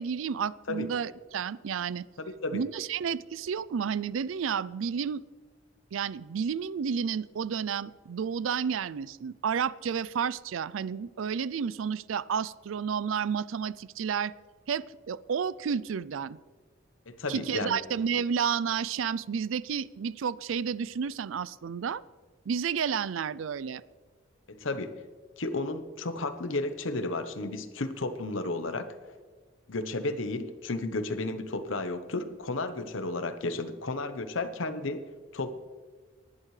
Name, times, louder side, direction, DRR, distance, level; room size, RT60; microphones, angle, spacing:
voice 1, 0.0-2.1 2.5-5.2 5.9-14.3 14.7-16.4 17.3-22.0 22.5-23.8, right 7 dB, 85° right, 19 dB, 0.4 m, -31 dB
voice 2, 2.2-2.6 17.1-17.8 24.5-25.0 25.4-28.9 29.7-35.0 35.3-35.5, left 2 dB, 80° left, 10 dB, 1.0 m, -33 dB
19.5 x 11.0 x 3.3 m, 1.5 s
head